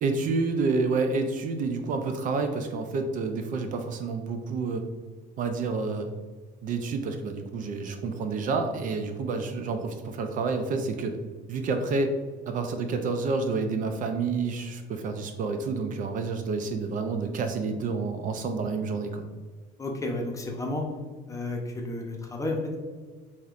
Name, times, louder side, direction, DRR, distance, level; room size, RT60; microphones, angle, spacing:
voice 1, 0.0-4.8 5.4-6.1 6.6-11.2 11.5-12.1 12.5-19.3, right 4 dB, 50° right, 6 dB, 0.4 m, -29 dB
voice 2, 19.8-20.8 21.3-22.8, left 2 dB, 20° left, 1 dB, 0.7 m, -31 dB
4.7 x 2.8 x 2.4 m, 1.4 s
cardioid pair, 110°, 18 cm